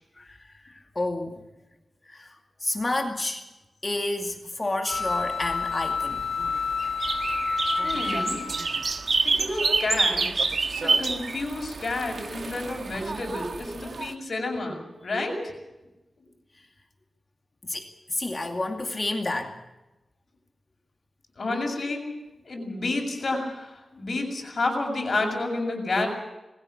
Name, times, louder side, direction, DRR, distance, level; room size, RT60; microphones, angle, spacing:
voice 1, 0.2-1.4 2.0-3.5 3.8-6.3 16.5-16.7 17.6-19.6, left 2 dB, 30° left, 4 dB, 2.3 m, -30 dB
sound 1, 4.9-8.9, left 4 dB, 70° left, 2.9 m, -29 dB
sound 2, 4.9-14.1, right 4 dB, 60° right, 1.5 m, -29 dB
voice 2, 7.8-8.4 9.2-10.5 10.8-15.5 21.4-22.0 22.5-26.1, left 2 dB, 55° left, 1 dB, 7.2 m, -30 dB
21.0 x 15.5 x 8.6 m, 0.99 s
wide cardioid pair, 95°, 0 cm